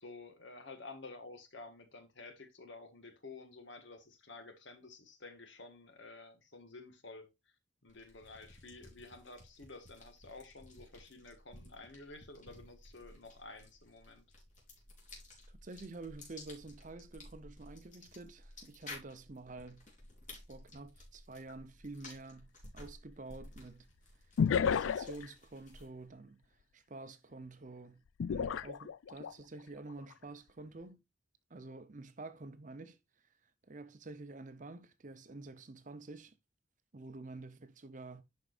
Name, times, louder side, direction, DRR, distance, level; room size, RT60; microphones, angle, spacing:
voice 1, 0.0-7.3 7.8-14.3, left 3 dB, 65° left, 1.6 m, -51 dB
sound 1, 7.9-26.1, left 2 dB, 40° left, 3.5 m, -55 dB
voice 2, 15.5-19.9 20.5-23.9 24.5-26.4 26.7-31.0 31.5-33.0 33.6-36.3 36.9-38.2, right 3 dB, 40° right, 0.7 m, -49 dB
sound 2, 21.5-21.6 24.4-25.3 28.2-29.3 29.9-30.1, left 7 dB, 80° left, 0.4 m, -31 dB
11.0 x 4.6 x 2.5 m
head